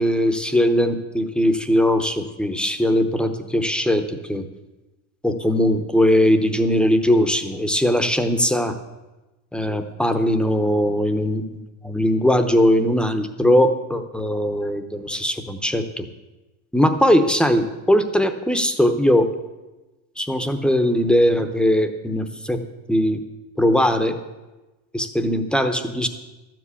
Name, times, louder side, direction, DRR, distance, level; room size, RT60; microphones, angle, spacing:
voice 1, 0.0-4.0 4.3-4.4 5.2-8.7 9.5-16.1 16.7-19.3 20.2-22.6 22.9-23.2 23.6-24.2 24.9-26.1, equal, 5° left, 9 dB, 0.8 m, -20 dB
12.0 x 7.6 x 8.3 m, 1.1 s
cardioid pair, 145°, 37 cm